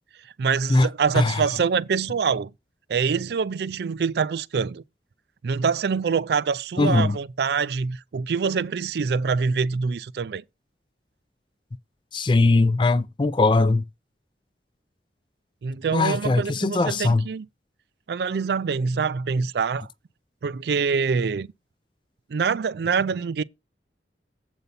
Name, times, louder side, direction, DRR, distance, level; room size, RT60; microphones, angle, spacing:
voice 1, 0.4-2.5 2.9-4.8 5.4-10.4 15.6-17.4 18.1-19.9 20.4-21.5 22.3-23.4, right 5 dB, 65° right, 0.4 m, -25 dB
voice 2, 6.8-7.2 12.1-13.8 15.9-17.2, left 3 dB, 25° left, 0.4 m, -20 dB
8.0 x 4.0 x 6.8 m
head